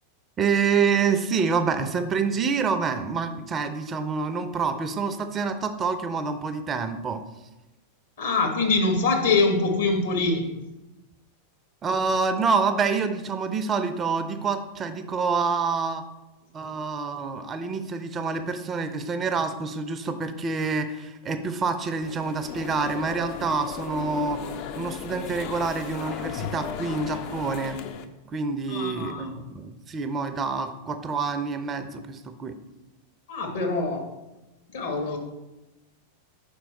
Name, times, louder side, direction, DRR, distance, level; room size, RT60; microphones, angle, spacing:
voice 1, 0.4-7.2 11.8-16.0 16.5-24.4 24.8-27.8 28.3-32.6, right 5 dB, 25° right, 8 dB, 0.4 m, -27 dB
voice 2, 8.2-10.5 28.7-29.3 33.3-34.1 34.7-35.2, left 3 dB, 60° left, 3 dB, 1.1 m, -24 dB
sound 1, 22.0-28.1, left 7 dB, 45° left, 0.4 m, -36 dB
5.1 x 4.4 x 4.2 m, 1.0 s
figure-of-eight pair, 90°, 0 cm